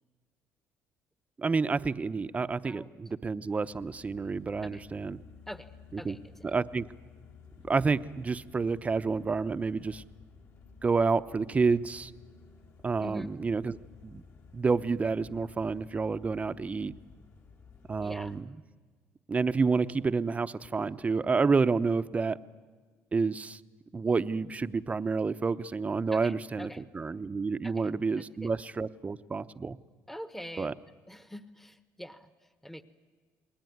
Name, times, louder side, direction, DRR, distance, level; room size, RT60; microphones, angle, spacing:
voice 1, 1.4-5.2 5.9-6.2 6.4-6.9 7.7-10.0 10.8-12.1 12.8-13.8 14.0-14.2 14.5-16.9 17.9-18.4 19.3-22.4 23.1-23.6 23.9-26.7 26.9-29.8 30.6-30.7, right 4 dB, 25° right, 13 dB, 0.9 m, -29 dB
sound 1, 3.7-18.4, left 5 dB, 55° left, 4.4 m, -54 dB
voice 2, 6.0-6.5 13.0-13.3 18.0-18.3 26.1-26.8 27.6-27.9 28.4-28.5 30.1-30.7 31.1-32.8, equal, 5° left, 12 dB, 1.2 m, -44 dB
29.0 x 20.5 x 9.5 m, 1.5 s
cardioid pair, 100°, 6 cm